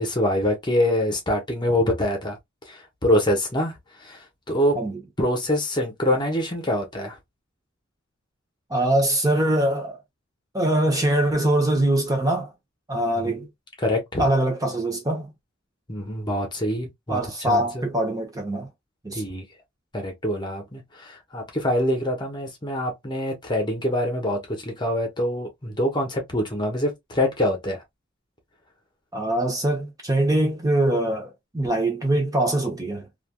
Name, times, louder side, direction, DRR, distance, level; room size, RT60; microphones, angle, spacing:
voice 1, 0.0-2.4 2.7-3.7 4.0-4.2 4.5-4.8 5.2-7.2 13.1-13.5 13.8-14.2 15.9-17.9 19.1-19.4 19.9-27.8, left 1 dB, 25° left, 0.9 m, -25 dB
voice 2, 8.7-10.0 10.5-12.5 12.9-13.4 14.2-15.3 17.1-18.7 19.0-19.2 29.1-33.1, right 1 dB, 20° right, 0.9 m, -23 dB
3.3 x 2.5 x 2.3 m
head